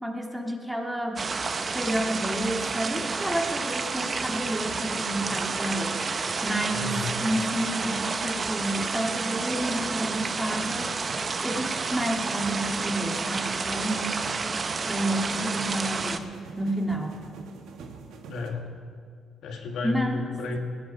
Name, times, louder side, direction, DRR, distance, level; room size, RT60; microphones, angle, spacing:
voice 1, 0.0-1.3 1.7-10.9 11.4-14.2 14.8-17.2 19.8-20.2, right 1 dB, 10° right, 1 dB, 1.9 m, -30 dB
sound 1, 1.2-16.2, right 4 dB, 40° right, 0.8 m, -30 dB
voice 2, 6.7-7.1 18.3-18.7 19.4-20.6, left 3 dB, 75° left, 2 dB, 1.8 m, -32 dB
sound 2, 9.5-18.5, right 4 dB, 85° right, 1.4 m, -45 dB
19.5 x 9.4 x 5.5 m, 2.1 s
cardioid pair, 90°, 0 cm